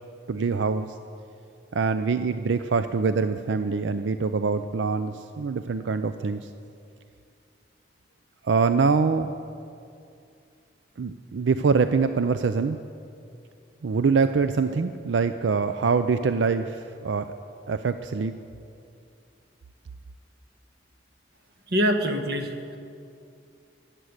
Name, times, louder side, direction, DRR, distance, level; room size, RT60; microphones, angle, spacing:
voice 1, 0.3-0.9 1.7-6.5 8.4-9.3 11.0-12.8 13.8-17.3 17.7-18.3, right 5 dB, 90° right, 10 dB, 0.5 m, -24 dB
voice 2, 21.7-22.8, equal, 60° right, 5 dB, 1.3 m, -25 dB
14.5 x 7.6 x 9.5 m, 2.5 s
head